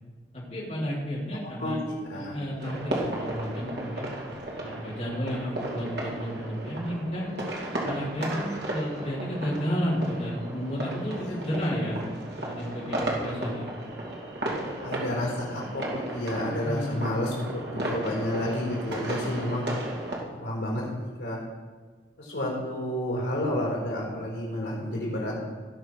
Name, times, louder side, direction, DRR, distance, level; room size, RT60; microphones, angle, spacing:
voice 1, 0.3-1.8 2.1-4.1 4.6-7.3 7.8-12.1 12.4-13.9 16.6-17.6, equal, 35° left, -8 dB, 3.5 m, -32 dB
voice 2, 1.6-2.3 14.8-17.3 17.7-19.7 20.4-21.4 22.2-25.4, left 1 dB, 80° left, -3 dB, 4.2 m, -30 dB
sound 1, 2.6-20.2, right 1 dB, 65° right, 2.5 m, -34 dB
18.0 x 6.1 x 4.8 m, 1.4 s
head